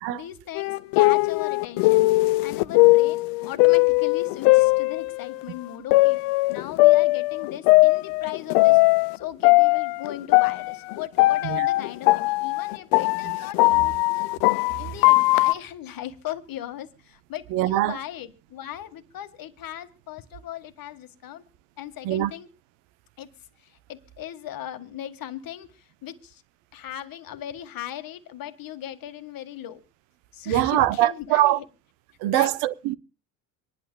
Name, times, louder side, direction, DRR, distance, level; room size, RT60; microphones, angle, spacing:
voice 1, 0.1-2.0 2.4-6.2 6.5-8.8 9.1-14.3 14.8-21.4 21.8-22.5 23.2-23.3 23.6-26.4 26.7-29.8 30.3-31.7 32.3-32.6, left 11 dB, 45° left, 1.6 m, -38 dB
sound 1, 0.6-5.4 5.9-9.2 9.4-15.5, left 22 dB, 60° left, 0.6 m, -19 dB
voice 2, 17.5-18.0 22.0-22.3 30.5-31.6 32.2-33.0, right 15 dB, 60° right, 0.8 m, -22 dB
25.5 x 11.0 x 2.2 m
hypercardioid pair, 80°, 48 cm